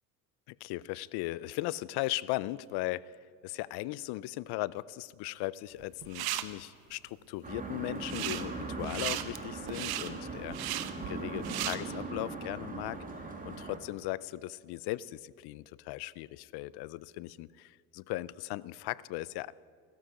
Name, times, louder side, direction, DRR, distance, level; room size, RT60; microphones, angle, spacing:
voice 1, 0.5-3.2 3.4-19.5, left 17 dB, 60° left, 21 dB, 0.5 m, -38 dB
sound 1, 5.8-6.4 8.0-8.4 8.8-11.8, right 14 dB, 55° right, 0.9 m, -36 dB
sound 2, 7.4-13.8, right 3 dB, 20° right, 2.1 m, -40 dB
16.0 x 13.5 x 4.9 m, 2.1 s
supercardioid pair, 110°, 44 cm